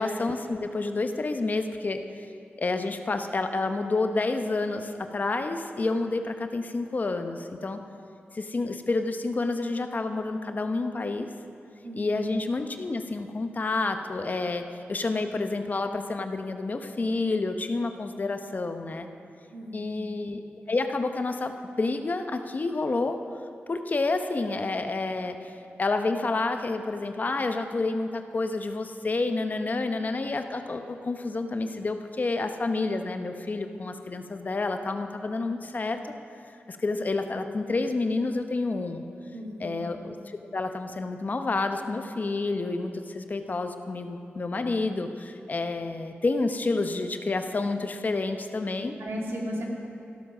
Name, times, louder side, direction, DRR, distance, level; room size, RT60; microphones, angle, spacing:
voice 1, 0.0-2.3 2.6-7.8 8.3-11.3 11.9-19.1 19.7-20.4 20.7-23.2 23.7-25.5 25.8-36.1 36.7-39.0 39.6-48.9, left 3 dB, 40° left, 7 dB, 0.8 m, -29 dB
voice 2, 11.8-12.2 19.5-20.0 39.3-39.8 49.0-49.7, equal, 70° right, -1 dB, 2.5 m, -35 dB
13.5 x 12.5 x 6.1 m, 2.7 s
wide cardioid pair, 110°, 4 cm